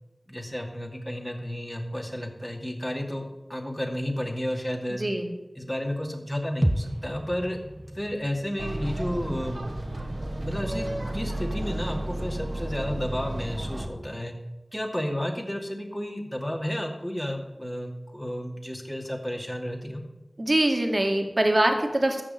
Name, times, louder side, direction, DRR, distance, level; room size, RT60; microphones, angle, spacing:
voice 1, 0.3-5.0 5.6-7.6 7.9-9.6 10.4-14.3 14.7-20.0, equal, 15° left, 2 dB, 2.5 m, -32 dB
voice 2, 4.9-5.3 20.4-22.2, right 1 dB, 45° right, 3 dB, 2.2 m, -23 dB
sound 1, 6.6-10.6 10.9-11.0, equal, 10° right, 0.9 m, -32 dB
sound 2, 8.6-13.9, right 1 dB, 60° right, 1.8 m, -32 dB
13.5 x 6.4 x 7.9 m, 1.0 s
wide cardioid pair, 45°, 0 cm